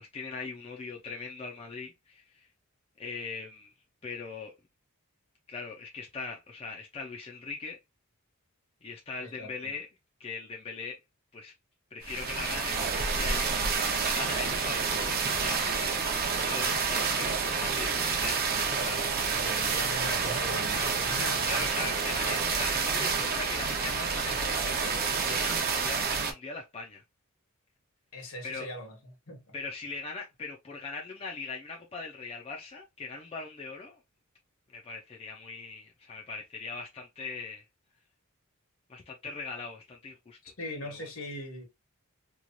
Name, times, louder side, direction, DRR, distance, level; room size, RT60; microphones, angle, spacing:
voice 1, 0.0-2.5 3.0-3.7 4.0-4.5 5.5-7.8 8.8-9.9 10.2-11.0 11.3-11.5 11.9-13.5 13.8-19.4 21.5-27.0 28.4-28.7 29.5-34.0 34.7-37.6 38.9-40.5 40.8-41.1, left 4 dB, 25° left, 0.4 m, -40 dB
voice 2, 9.2-9.7 19.3-21.9 28.1-29.5 40.4-41.7, left 1 dB, 70° left, 1.3 m, -40 dB
sound 1, 12.0-26.3, right 5 dB, 45° right, 0.6 m, -29 dB
3.0 x 2.3 x 2.6 m
head